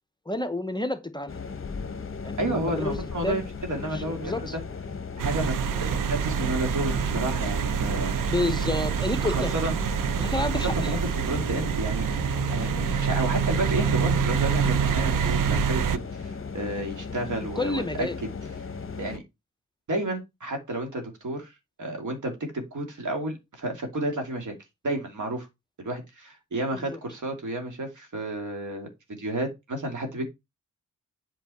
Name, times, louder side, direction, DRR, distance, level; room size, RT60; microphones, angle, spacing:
voice 1, 0.3-1.5 2.2-3.4 3.8-4.6 8.3-9.6 10.2-11.0 17.6-18.2 26.7-27.0, left 2 dB, 15° left, 0.7 m, -30 dB
sound 1, 1.3-19.2, left 5 dB, 40° left, 0.9 m, -37 dB
voice 2, 2.4-4.6 5.2-8.2 9.2-9.8 10.7-12.2 12.5-18.3 19.0-19.2 19.9-21.5 21.8-24.5 24.8-25.5 25.8-30.3, right 1 dB, 70° right, 2.4 m, -31 dB
sound 2, 5.2-16.0, right 7 dB, 85° right, 0.6 m, -26 dB
8.2 x 4.5 x 4.2 m
wide cardioid pair, 110°, 32 cm